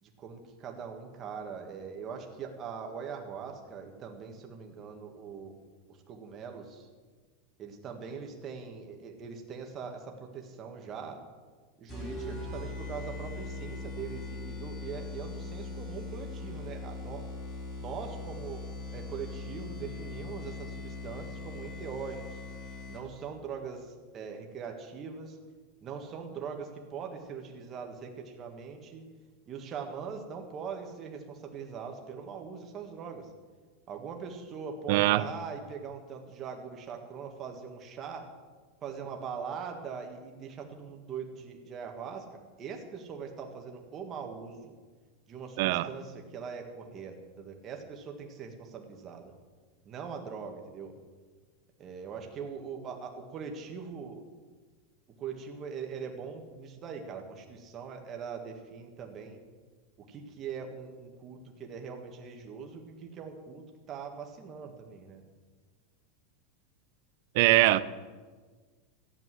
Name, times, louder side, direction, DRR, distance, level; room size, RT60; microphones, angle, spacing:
voice 1, 0.0-5.5 5.9-6.9 7.6-11.2 11.8-17.3 17.8-22.4 22.9-25.4 25.8-29.0 29.5-33.3 33.9-38.3 38.8-44.8 45.3-49.3 49.9-50.9 51.8-54.2 55.2-59.4 60.1-65.2, right 6 dB, 20° right, 3 dB, 1.8 m, -41 dB
sound 1, 11.9-23.3, left 3 dB, 20° left, 3.5 m, -40 dB
voice 2, 34.9-35.3 45.6-45.9 67.3-67.8, right 17 dB, 45° right, 15 dB, 0.6 m, -22 dB
14.0 x 10.5 x 7.6 m, 1.4 s
supercardioid pair, 175°, 0 cm